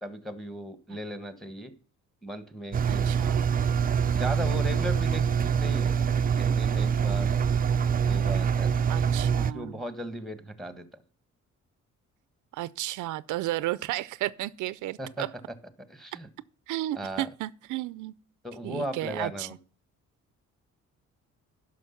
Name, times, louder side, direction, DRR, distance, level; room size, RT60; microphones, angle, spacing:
voice 1, 0.0-1.7 2.2-3.1 4.1-6.1 6.4-7.4 7.9-8.9 9.5-11.0 15.0-15.2 15.9-16.3 16.9-17.3 18.4-19.6, equal, ahead, 1.4 m, -37 dB
Engine, 2.7-9.5, right 7 dB, 30° right, 0.4 m, -25 dB
voice 2, 2.9-3.5 8.9-9.8 12.5-15.3 16.7-18.1 18.6-19.5, right 16 dB, 80° right, 0.5 m, -33 dB
11.0 x 5.8 x 5.8 m
cardioid pair, 90°, 30 cm